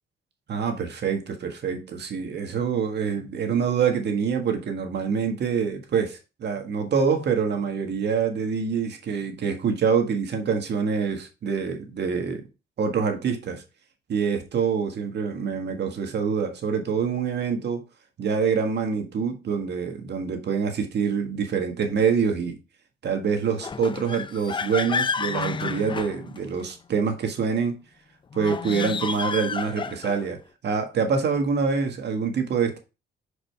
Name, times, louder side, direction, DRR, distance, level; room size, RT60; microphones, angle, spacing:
voice 1, 0.5-12.4 12.8-13.6 14.1-17.8 18.2-22.6 23.0-27.8 28.3-30.4 30.6-32.8, right 6 dB, 60° right, 1.6 m, -25 dB
sound 1, 23.6-26.7 28.3-30.3, left 5 dB, 25° left, 0.5 m, -30 dB
6.0 x 5.0 x 3.4 m
cardioid pair, 90°, 20 cm